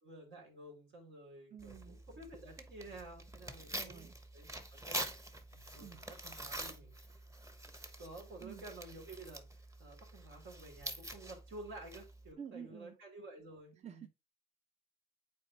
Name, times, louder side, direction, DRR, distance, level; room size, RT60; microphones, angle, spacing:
voice 1, 0.0-4.1 4.3-5.1 5.5-6.9 8.0-14.1, right 2 dB, 70° right, 3.4 m, -52 dB
voice 2, 1.5-2.0 3.7-4.1 5.8-6.0 8.4-8.6 12.4-13.0 13.8-14.1, right 8 dB, 35° right, 0.7 m, -49 dB
Tearing, 1.6-12.3, right 1 dB, 15° right, 1.1 m, -46 dB
8.5 x 4.3 x 3.0 m
cardioid pair, 90°, 20 cm